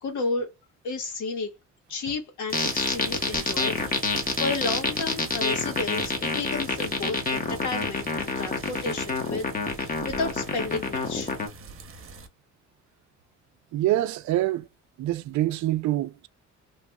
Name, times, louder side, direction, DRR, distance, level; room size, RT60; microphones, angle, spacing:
voice 1, 0.0-0.5 0.8-1.5 1.9-3.9 4.4-9.4 9.8-11.3, left 3 dB, 75° left, 1.3 m, -32 dB
sound 1, 2.5-11.5, left 3 dB, 30° left, 1.0 m, -27 dB
sound 2, 2.5-12.3, right 4 dB, 45° right, 0.9 m, -43 dB
voice 2, 13.7-14.7 15.0-16.3, right 14 dB, 70° right, 0.4 m, -25 dB
3.0 x 2.8 x 2.3 m
cardioid pair, 90°, 30 cm